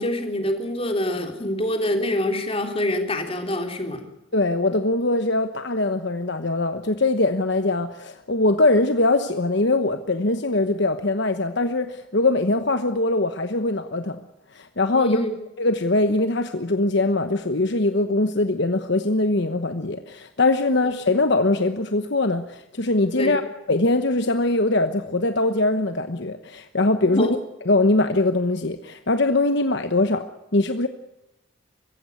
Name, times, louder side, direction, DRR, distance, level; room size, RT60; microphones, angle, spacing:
voice 1, 0.0-4.0 14.9-15.3 23.1-23.4 27.1-27.3, left 1 dB, 25° left, 4 dB, 3.5 m, -25 dB
voice 2, 4.3-14.2 14.5-15.2 15.6-23.4 23.7-27.4 27.7-30.2 30.5-30.9, left 2 dB, 55° left, 8 dB, 1.1 m, -22 dB
24.0 x 15.5 x 9.5 m, 0.96 s
head